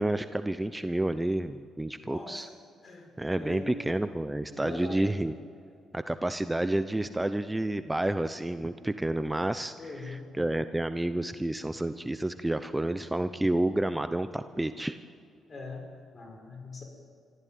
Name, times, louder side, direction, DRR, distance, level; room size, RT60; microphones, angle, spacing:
voice 1, 0.0-2.5 3.2-5.3 5.9-15.0, right 1 dB, 10° right, 11 dB, 0.8 m, -30 dB
voice 2, 2.0-2.5 2.8-3.7 4.5-5.1 9.8-10.3 15.5-15.8 16.1-16.8, left 3 dB, 40° left, 3 dB, 6.1 m, -41 dB
26.0 x 14.5 x 9.4 m, 2.4 s
cardioid pair, 90°, 0 cm